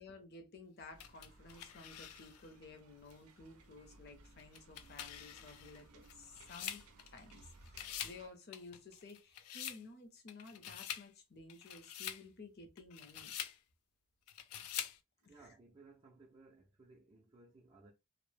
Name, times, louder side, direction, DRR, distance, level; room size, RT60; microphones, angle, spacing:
voice 1, 0.0-6.8 7.1-13.3 15.2-15.5, left 3 dB, 45° left, 0.6 m, -54 dB
sound 1, 0.9-8.3, right 3 dB, 90° right, 0.5 m, -62 dB
sound 2, 1.0-2.5 3.1-3.2 4.4-7.4 7.7-8.2 8.5-9.8 10.3-11.1 11.5-12.2 12.8-13.6 14.3-15.0, left 10 dB, 90° left, 0.4 m, -46 dB
voice 2, 15.2-17.9, right 3 dB, 25° right, 0.4 m, -61 dB
2.0 x 2.0 x 3.1 m
head